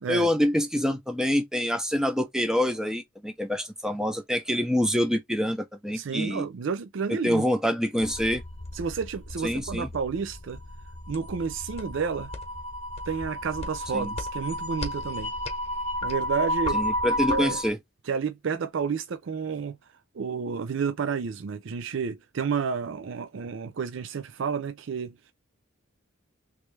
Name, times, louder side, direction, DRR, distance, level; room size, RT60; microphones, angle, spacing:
voice 1, 0.1-6.5 7.2-8.4 9.4-9.9 13.9-14.1 16.7-17.8, left 1 dB, 5° right, 0.7 m, -26 dB
voice 2, 5.9-7.4 8.7-10.6 11.1-12.3 13.1-15.3 16.0-16.8 17.3-17.6 18.1-19.8 20.1-25.3, right 6 dB, 65° right, 0.4 m, -30 dB
sound 1, 8.0-17.7, equal, 30° left, 1.0 m, -32 dB
3.2 x 3.2 x 3.2 m
head